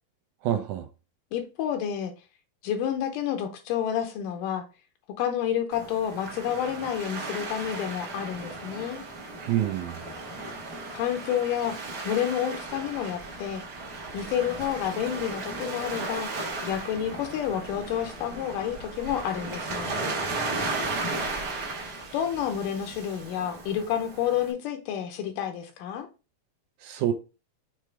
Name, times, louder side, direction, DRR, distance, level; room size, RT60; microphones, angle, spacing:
voice 1, 0.4-0.9 9.4-10.0 26.8-27.1, right 11 dB, 80° right, 1.8 m, -27 dB
voice 2, 1.3-2.1 2.6-4.6 5.2-9.0 10.9-11.8 12.0-13.6 14.1-16.3 16.6-19.9 22.1-26.1, left 9 dB, 80° left, 2.3 m, -29 dB
Waves surf, 5.7-24.5, right 3 dB, 55° right, 1.1 m, -35 dB
6.9 x 3.2 x 4.6 m
omnidirectional pair, 4.0 m